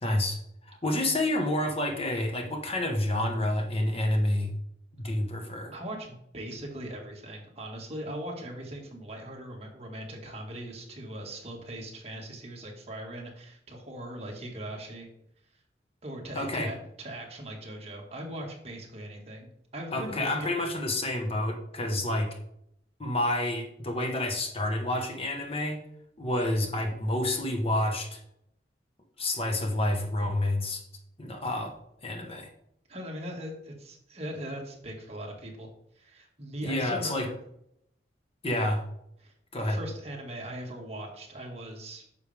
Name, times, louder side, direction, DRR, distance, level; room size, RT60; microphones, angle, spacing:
voice 1, 0.0-4.5 4.9-5.7 16.3-16.7 19.9-22.4 23.0-25.8 26.2-28.2 29.2-30.8 31.2-31.7 32.0-32.5 36.6-37.3 38.4-38.8 39.5-39.8, left 1 dB, 35° left, 3 dB, 1.3 m, -29 dB
voice 2, 5.7-15.1 16.0-19.5 19.7-20.3 32.9-35.7 35.9-37.3 39.2-39.3 39.6-42.1, right 1 dB, 35° right, 0 dB, 1.9 m, -40 dB
9.6 x 6.8 x 3.5 m, 0.74 s
head